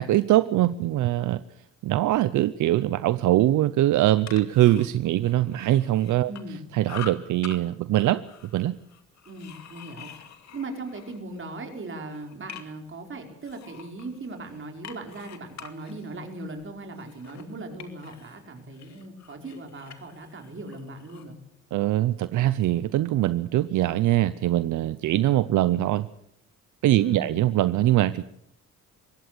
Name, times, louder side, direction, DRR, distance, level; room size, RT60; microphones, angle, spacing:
voice 1, 0.0-1.4 1.8-6.3 6.7-8.2 8.5-8.7 21.7-26.1 26.8-28.2, right 14 dB, 80° right, 15 dB, 0.7 m, -22 dB
sound 1, 4.0-6.6 6.8-7.6 7.9-11.5 11.9-12.9 13.4-18.4 18.7-21.3, left 8 dB, 65° left, 2.4 m, -45 dB
voice 2, 6.3-6.6 9.2-10.1 10.5-21.4 26.9-27.4, right 2 dB, 40° right, 4 dB, 4.9 m, -39 dB
22.5 x 17.0 x 6.8 m, 0.76 s
cardioid pair, 90°, 30 cm